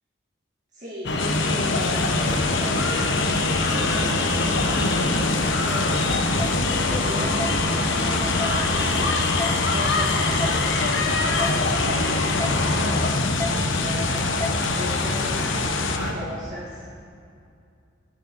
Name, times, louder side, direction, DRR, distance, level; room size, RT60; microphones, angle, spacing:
voice 1, 0.7-3.1 3.6-6.1 6.5-9.3 9.6-14.3 14.7-16.9, equal, 40° right, -7 dB, 1.9 m, -38 dB
sound 1, 1.0-16.1, left 2 dB, 65° left, 1.2 m, -24 dB
sound 2, 1.2-16.0, left 7 dB, 90° left, 0.9 m, -30 dB
sound 3, 6.4-6.5 7.4-7.5 8.4-8.6 9.4-9.5 10.4-10.6 11.4-11.5 12.4-12.6 13.4-13.5 14.4-14.6, left 3 dB, 15° left, 0.5 m, -29 dB
11.0 x 6.6 x 8.1 m, 2.4 s
head